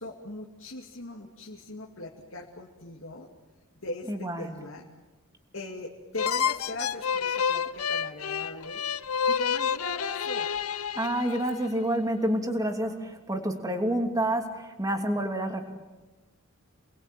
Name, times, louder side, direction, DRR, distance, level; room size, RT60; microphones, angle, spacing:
voice 1, 0.0-3.3 3.7-4.9 5.5-8.8 9.3-10.5, left 2 dB, 65° left, -1 dB, 2.5 m, -40 dB
voice 2, 4.1-4.5 10.9-15.6, right 1 dB, 15° right, 4 dB, 2.9 m, -28 dB
sound 1, 6.2-11.7, left 7 dB, 80° left, 0.8 m, -29 dB
28.5 x 21.0 x 9.1 m, 1.2 s
head